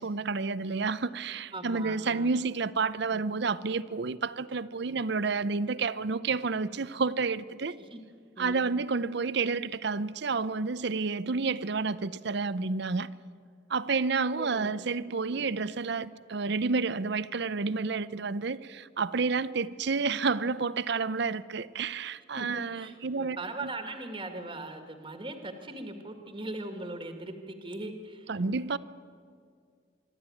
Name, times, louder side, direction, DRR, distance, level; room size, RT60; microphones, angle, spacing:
voice 1, 0.0-7.7 8.4-13.1 13.7-23.4 23.6-23.7 28.3-28.8, right 4 dB, 55° right, 17 dB, 0.6 m, -30 dB
voice 2, 1.5-2.3 3.1-3.2 7.8-8.0 8.4-8.7 14.4-14.7 15.3-15.5 22.4-28.3, right 2 dB, 25° right, 6 dB, 1.7 m, -40 dB
25.0 x 12.5 x 9.3 m, 2.1 s
head